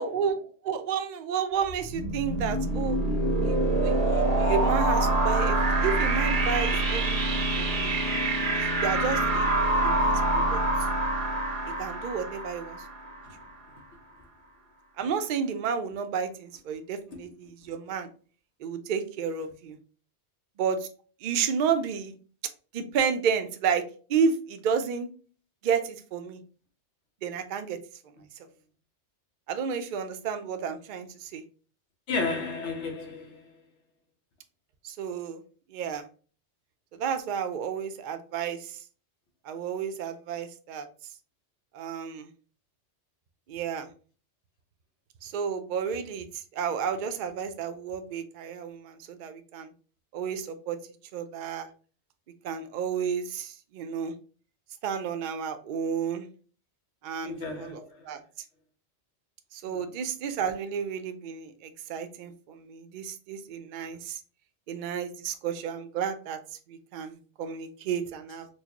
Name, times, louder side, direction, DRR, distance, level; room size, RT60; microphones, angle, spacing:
voice 1, 0.0-3.0 3.4-7.9 8.5-9.5 9.8-10.6 11.7-12.8 15.0-18.1 18.6-19.8 20.6-20.9 21.2-22.2 22.7-23.8 24.1-25.1 25.6-26.4 27.2-27.8 29.5-31.4 34.8-35.4 35.7-36.0 36.9-38.8 39.4-40.9 41.7-42.3 43.5-43.9 45.2-49.7 50.1-50.8 51.1-51.7 52.4-54.1 54.8-56.3 57.0-58.2 59.5-64.2 64.7-66.4 66.7-68.5, right 6 dB, 60° right, 0.5 m, -31 dB
sound 1, 1.6-13.3, right 2 dB, 90° right, 1.2 m, -26 dB
voice 2, 32.1-33.5 57.2-58.1 59.6-59.8, left 3 dB, 80° left, 1.2 m, -33 dB
4.5 x 2.1 x 2.8 m
omnidirectional pair, 1.2 m